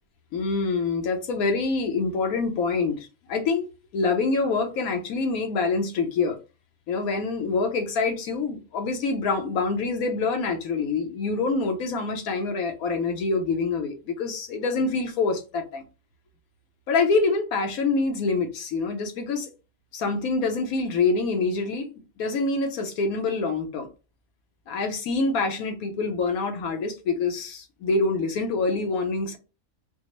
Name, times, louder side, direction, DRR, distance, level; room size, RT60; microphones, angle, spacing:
voice 1, 0.3-3.6 3.9-6.4 6.9-15.8 16.9-19.5 19.9-23.9 24.7-29.4, left 4 dB, 85° left, 1.2 m, -26 dB
4.3 x 2.0 x 3.0 m
omnidirectional pair, 1.5 m